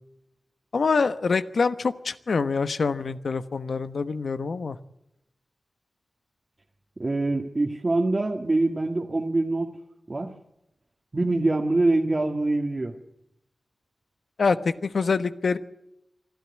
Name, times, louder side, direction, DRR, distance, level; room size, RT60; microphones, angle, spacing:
voice 1, 0.7-4.8 14.4-15.6, left 4 dB, 75° left, 11 dB, 1.2 m, -25 dB
voice 2, 7.0-9.7 10.1-10.3 11.1-13.0, right 2 dB, 45° right, 1 dB, 1.9 m, -24 dB
24.5 x 13.0 x 9.7 m, 0.87 s
cardioid pair, 55°, 0 cm